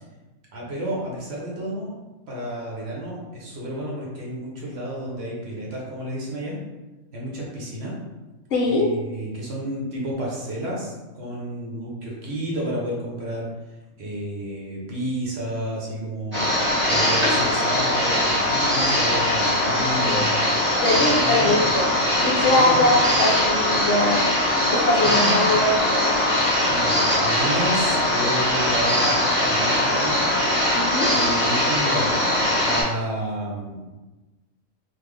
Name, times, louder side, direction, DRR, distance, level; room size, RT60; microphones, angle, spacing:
voice 1, 0.5-1.9 2.3-6.6 7.1-8.0 8.7-13.5 14.0-16.4 16.8-20.4 20.9-21.7 22.4-22.9 25.2-25.4 26.7-30.3 31.1-33.9, right 1 dB, 60° right, -4 dB, 0.9 m, -31 dB
voice 2, 8.5-8.9 19.6-19.7 20.0-20.2 20.8-21.9 22.2-24.3 24.7-26.1 30.8-31.1, left 2 dB, 65° left, -2 dB, 0.8 m, -22 dB
sound 1, 16.3-32.8, left 1 dB, 10° right, 0.8 m, -21 dB
3.1 x 2.0 x 3.5 m, 1.1 s
omnidirectional pair, 1.4 m